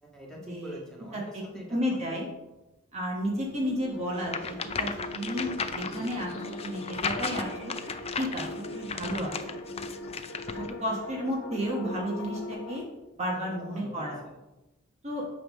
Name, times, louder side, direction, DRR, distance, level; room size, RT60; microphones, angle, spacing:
voice 1, 0.0-2.2 13.3-14.4, equal, 5° left, -3 dB, 1.8 m, -45 dB
voice 2, 1.7-2.3 2.9-7.7 8.2-8.4 8.7-9.6 10.6-12.8 13.2-14.2 15.0-15.2, equal, 30° right, -2 dB, 1.2 m, -32 dB
sound 1, 3.2-12.8, left 1 dB, 80° left, 1.1 m, -40 dB
sound 2, 4.2-10.7, left 5 dB, 30° left, 0.5 m, -35 dB
9.1 x 3.4 x 6.3 m, 1.0 s
head